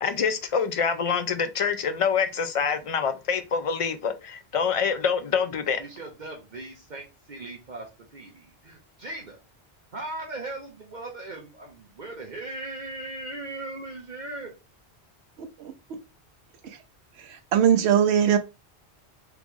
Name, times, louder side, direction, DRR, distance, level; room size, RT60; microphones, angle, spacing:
voice 1, 0.0-5.8, left 6 dB, 55° left, 0.4 m, -26 dB
voice 2, 5.8-9.4 9.9-14.5, right 2 dB, 50° right, 0.9 m, -38 dB
voice 3, 15.6-16.0 16.6-16.8 17.2-18.4, right 9 dB, 85° right, 0.9 m, -22 dB
3.4 x 3.0 x 3.5 m
omnidirectional pair, 1.1 m